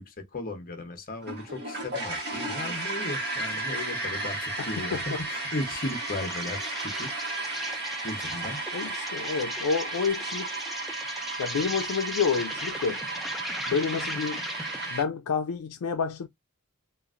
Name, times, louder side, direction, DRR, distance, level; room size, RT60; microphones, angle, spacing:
voice 1, 0.0-7.1 8.0-8.6, left 2 dB, 40° left, 0.8 m, -36 dB
sound 1, 1.2-15.0, right 2 dB, 50° right, 1.2 m, -34 dB
voice 2, 4.6-5.2 8.7-10.5 11.4-13.0 13.7-14.4 14.9-16.3, left 5 dB, 75° left, 0.4 m, -29 dB
Insect, 5.6-15.0, equal, ahead, 0.4 m, -39 dB
3.1 x 2.4 x 2.4 m
head